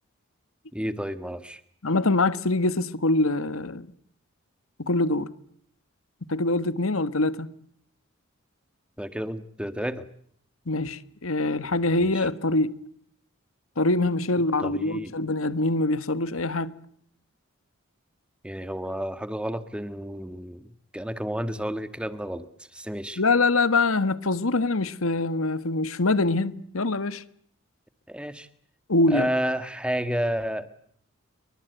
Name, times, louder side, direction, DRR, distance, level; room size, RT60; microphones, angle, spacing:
voice 1, 0.7-1.6 9.0-10.1 12.0-12.3 14.6-15.1 18.4-23.2 28.1-28.5 29.1-30.7, equal, 5° right, 1.5 m, -31 dB
voice 2, 1.8-3.9 4.8-5.3 6.3-7.5 10.7-12.7 13.8-16.7 23.2-27.2 28.9-29.3, left 2 dB, 90° left, 1.5 m, -24 dB
29.0 x 23.5 x 8.1 m
head